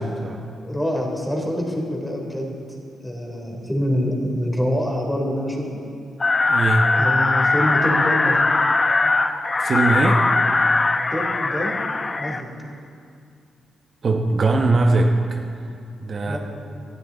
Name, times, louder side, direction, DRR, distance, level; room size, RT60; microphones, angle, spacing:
voice 1, 0.0-0.4 6.5-7.0 9.6-10.2 14.0-15.5 16.0-16.4, right 2 dB, 50° right, 2 dB, 1.1 m, -20 dB
voice 2, 0.6-2.6 3.0-5.8 6.9-8.5 11.1-11.8 12.2-12.5 16.3-16.4, equal, 5° left, 0 dB, 3.3 m, -25 dB
sound 1, 6.2-12.4, left 3 dB, 30° left, 0.7 m, -20 dB
19.0 x 12.5 x 4.0 m, 2.4 s
cardioid pair, 75°, 0 cm